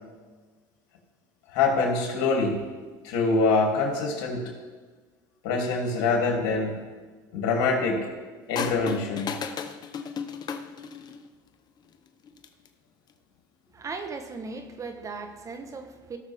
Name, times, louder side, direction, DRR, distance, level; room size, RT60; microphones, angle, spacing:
voice 1, 1.5-2.6 3.0-4.4 5.4-6.8 7.3-8.0 8.5-9.3, left 3 dB, 70° left, 0 dB, 2.9 m, -24 dB
sound 1, 8.6-11.3 12.3-12.7, left 6 dB, 40° left, 0.9 m, -34 dB
voice 2, 13.7-16.2, right 4 dB, 30° right, 7 dB, 1.2 m, -37 dB
17.0 x 6.6 x 3.6 m, 1.4 s
supercardioid pair, 90°, 11 cm